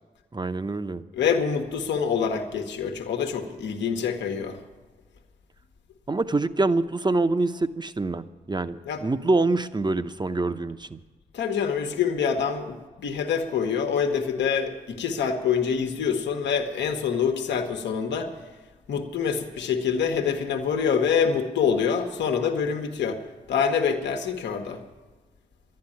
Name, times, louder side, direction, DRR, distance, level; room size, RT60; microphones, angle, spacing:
voice 1, 0.3-1.0 6.1-11.0, right 2 dB, 25° right, 12 dB, 0.9 m, -25 dB
voice 2, 1.1-4.6 8.9-9.0 11.3-18.3 18.9-23.2 23.5-24.8, left 6 dB, 80° left, 5 dB, 1.3 m, -26 dB
11.5 x 9.7 x 9.9 m, 1.3 s
supercardioid pair, 40°, 18 cm